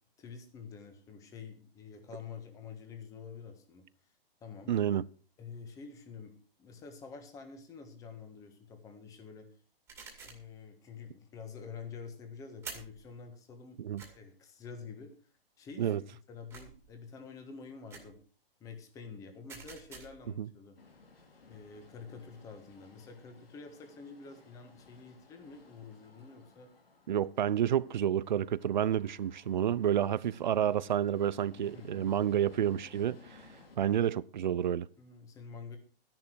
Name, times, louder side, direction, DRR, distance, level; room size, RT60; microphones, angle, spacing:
voice 1, 0.2-3.8 4.4-4.7 5.4-9.5 10.2-15.1 15.6-18.2 18.6-20.8 21.5-26.7 31.7-32.1 35.0-35.8, left 5 dB, 10° left, 1.5 m, -48 dB
voice 2, 4.7-5.0 13.8-14.0 15.8-16.0 20.4-20.5 27.1-33.2 33.8-34.9, right 10 dB, 50° right, 0.6 m, -29 dB
sound 1, 9.9-10.5 12.6-13.0 14.0-14.1 16.5-16.9 17.9-18.2 19.5-20.3, right 5 dB, 10° right, 2.3 m, -48 dB
sound 2, 20.8-33.8, left 4 dB, 75° left, 4.7 m, -59 dB
13.0 x 10.5 x 4.7 m
hypercardioid pair, 160°, 30 cm